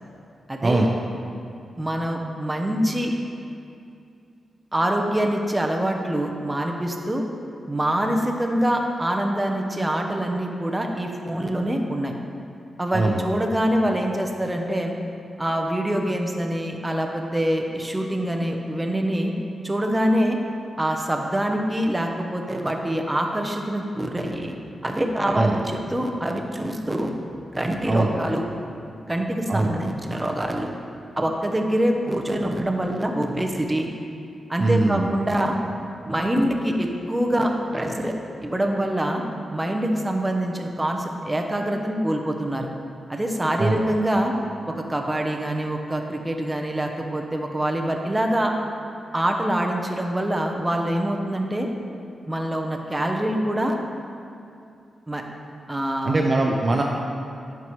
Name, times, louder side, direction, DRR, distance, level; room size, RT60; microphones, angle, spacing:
voice 1, 0.5-0.9 1.8-3.1 4.7-7.3 7.7-12.1 12.8-15.0 15.4-19.3 19.6-20.4 20.8-24.5 24.8-25.6 25.9-27.1 27.5-28.4 29.1-30.7 31.2-33.9 34.5-35.6 36.0-38.1 38.4-39.2 39.5-42.7 43.1-44.3 44.7-48.5 49.1-51.7 52.3-53.8 55.1-55.2 55.7-56.2 56.5-56.6, right 1 dB, 15° right, 2 dB, 0.8 m, -25 dB
voice 2, 12.9-13.3 25.3-25.5 27.9-28.1 29.5-29.7 34.6-35.1 43.6-43.8 56.0-56.8, right 2 dB, 40° right, 0 dB, 0.5 m, -21 dB
11.0 x 4.7 x 3.1 m, 2.5 s
cardioid pair, 75°, 0 cm